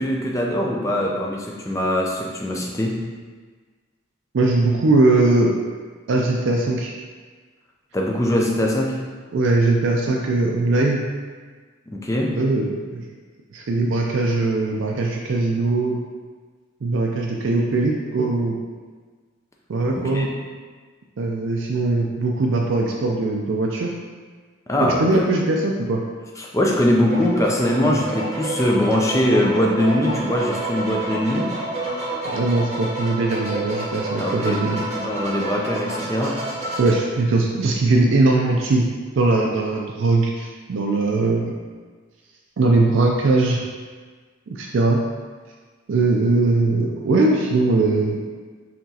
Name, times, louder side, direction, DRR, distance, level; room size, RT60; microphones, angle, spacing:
voice 1, 0.0-3.0 7.9-9.0 11.9-12.4 19.9-20.3 24.7-25.0 26.4-31.6 34.2-36.4, left 1 dB, 15° left, -1 dB, 0.4 m, -22 dB
voice 2, 4.3-5.5 6.1-6.9 9.3-11.1 12.3-13.0 13.5-16.0 16.8-18.6 19.7-20.3 21.2-23.9 24.8-26.0 32.2-34.9 36.8-38.9 39.1-41.5 42.6-43.6 44.5-45.0 45.9-48.2, right 2 dB, 60° right, 0 dB, 0.4 m, -20 dB
sound 1, 27.0-36.9, right 2 dB, 30° right, 0.8 m, -29 dB
5.7 x 3.0 x 2.8 m, 1.5 s
head